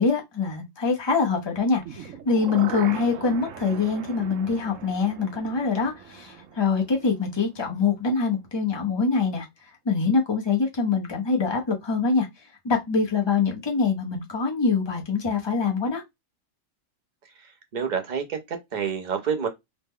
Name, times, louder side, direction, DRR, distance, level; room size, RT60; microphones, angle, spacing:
voice 1, 0.0-9.5 9.8-12.3 12.6-16.0, left 4 dB, 25° left, 0.6 m, -24 dB
sound 1, 1.8-7.8 8.1-8.2, right 8 dB, 80° right, 1.0 m, -40 dB
voice 2, 17.7-19.5, right 7 dB, 45° right, 0.6 m, -28 dB
3.1 x 2.1 x 3.5 m
omnidirectional pair, 1.3 m